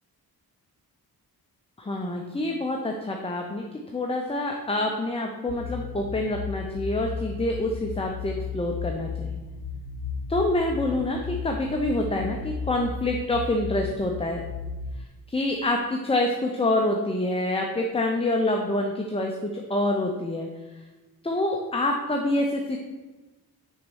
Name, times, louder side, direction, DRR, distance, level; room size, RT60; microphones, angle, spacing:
voice 1, 1.8-3.6 3.9-9.4 10.3-14.4 15.3-20.5 21.2-22.8, left 1 dB, 15° left, 2 dB, 0.5 m, -26 dB
sound 1, 5.5-15.1, left 6 dB, 75° left, 0.6 m, -35 dB
6.3 x 4.0 x 6.3 m, 1.2 s
wide cardioid pair, 130°, 39 cm